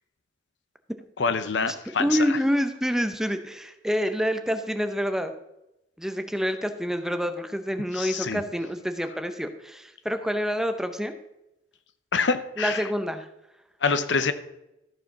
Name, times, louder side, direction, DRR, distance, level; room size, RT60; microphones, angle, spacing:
voice 1, 1.2-2.4 8.0-8.4 12.1-12.9 13.8-14.3, left 5 dB, 70° left, 11 dB, 0.7 m, -26 dB
voice 2, 2.0-5.3 6.0-11.1 12.6-13.3, equal, 5° right, 7 dB, 0.7 m, -27 dB
14.0 x 4.9 x 6.0 m, 0.88 s
head